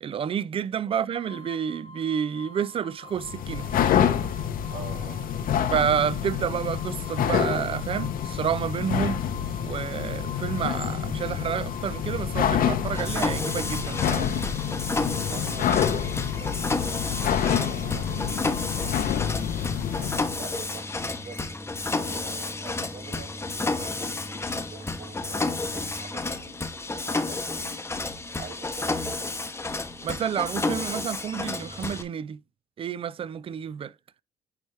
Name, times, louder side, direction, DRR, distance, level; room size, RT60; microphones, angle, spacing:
voice 1, 0.0-3.7 5.7-9.2 9.6-14.3 30.0-32.4 32.8-33.9, right 8 dB, 35° right, 0.4 m, -29 dB
sound 1, 1.1-19.1, left 3 dB, 80° left, 2.1 m, -46 dB
sound 2, 3.2-20.3, left 9 dB, 60° left, 0.9 m, -27 dB
voice 2, 4.7-5.2 14.7-14.8 15.2-19.2 20.0-21.4 21.9-26.6 27.0-27.8 28.4-29.3, right 5 dB, 55° right, 4.3 m, -45 dB
Mechanisms, 12.9-32.0, left 3 dB, 15° left, 0.8 m, -31 dB
9.6 x 3.4 x 3.3 m
cardioid pair, 110°, 16 cm